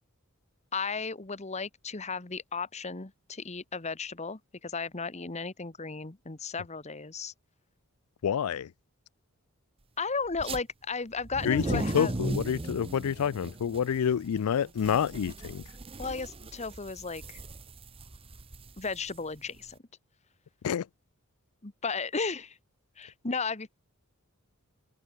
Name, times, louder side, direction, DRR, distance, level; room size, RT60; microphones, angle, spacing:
voice 1, 0.7-7.3 10.0-12.1 16.0-17.4 18.8-19.8 21.6-22.6 23.0-23.8, left 4 dB, 30° left, 1.2 m, -35 dB
voice 2, 8.2-8.7 11.4-15.6 20.6-20.8, left 8 dB, 85° left, 0.4 m, -28 dB
sound 1, 10.3-10.6 11.2-19.7, right 2 dB, 25° right, 0.9 m, -38 dB
open air
head